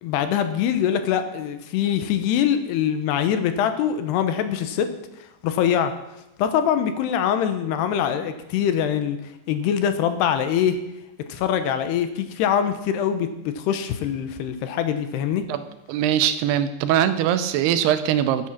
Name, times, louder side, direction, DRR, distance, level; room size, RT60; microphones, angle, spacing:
voice 1, 0.0-4.9 5.4-5.9 6.4-9.2 9.5-10.8 11.3-15.5, left 9 dB, 80° left, 9 dB, 3.0 m, -23 dB
voice 2, 15.9-18.5, right 10 dB, 80° right, 11 dB, 2.7 m, -21 dB
13.0 x 8.7 x 5.9 m, 0.93 s
omnidirectional pair, 4.8 m